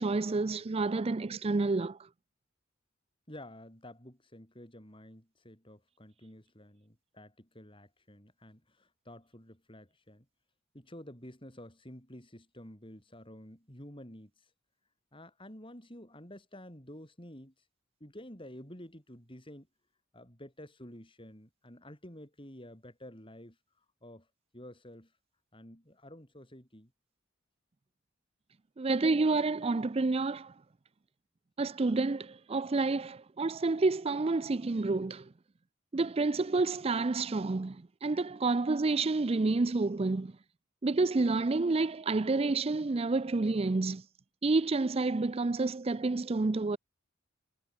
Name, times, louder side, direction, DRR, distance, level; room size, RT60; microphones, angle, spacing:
voice 1, 0.0-2.0 28.8-30.5 31.6-35.3 35.9-40.3 40.8-44.0 44.4-46.8, right 3 dB, 30° right, 0.4 m, -29 dB
voice 2, 3.3-10.3 10.7-14.5 15.1-17.6 18.0-19.7 20.1-24.3 24.5-25.1 25.5-26.9, left 1 dB, 25° left, 7.9 m, -50 dB
head